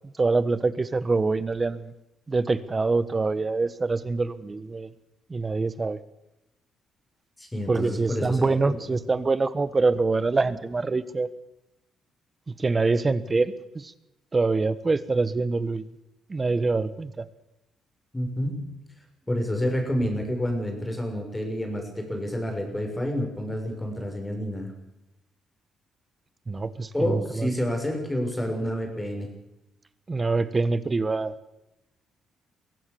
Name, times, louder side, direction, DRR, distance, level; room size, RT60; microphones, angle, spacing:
voice 1, 0.2-1.9 2.3-4.9 5.3-6.0 7.7-11.3 12.5-13.9 14.3-15.8 16.3-17.3 26.5-27.5 30.1-31.4, right 3 dB, 30° right, 15 dB, 1.4 m, -25 dB
voice 2, 7.4-8.8 18.1-18.6 19.3-24.7 26.9-29.3, equal, 10° left, 3 dB, 6.6 m, -29 dB
23.0 x 16.0 x 7.1 m, 0.92 s
cardioid pair, 90°, 0 cm